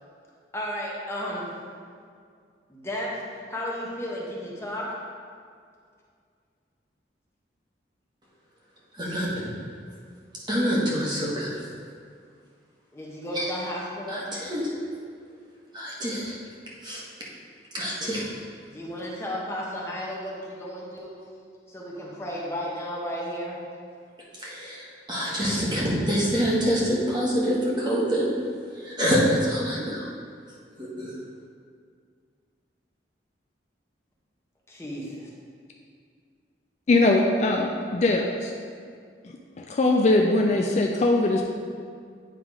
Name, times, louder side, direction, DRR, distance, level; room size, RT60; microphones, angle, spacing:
voice 1, 0.5-1.5 2.7-4.9 12.9-14.2 18.7-21.1 21.7-23.6 34.7-35.3, equal, 15° left, -5 dB, 1.1 m, -33 dB
voice 2, 8.9-9.5 10.5-11.6 13.3-13.5 14.1-14.7 15.7-16.4 16.8-17.0 17.7-18.3 24.3-28.3 28.7-30.1 30.8-31.2, equal, 25° right, -6 dB, 1.4 m, -26 dB
voice 3, 36.9-38.5 39.6-41.4, left 2 dB, 40° left, 1 dB, 0.4 m, -21 dB
9.2 x 3.5 x 4.7 m, 2.2 s
head